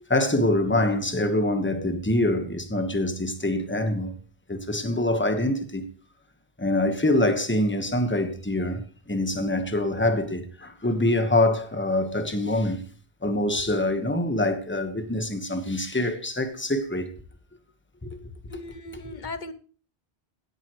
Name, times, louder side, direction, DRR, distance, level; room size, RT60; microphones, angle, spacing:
voice 1, 0.1-4.2 4.5-5.9 6.6-12.8 13.2-17.1 18.0-18.2 18.5-18.6 18.9-19.2, left 1 dB, 10° left, 1.3 m, -25 dB
voice 2, 18.5-19.5, left 2 dB, 50° left, 0.9 m, -37 dB
16.5 x 11.0 x 3.2 m
omnidirectional pair, 1.1 m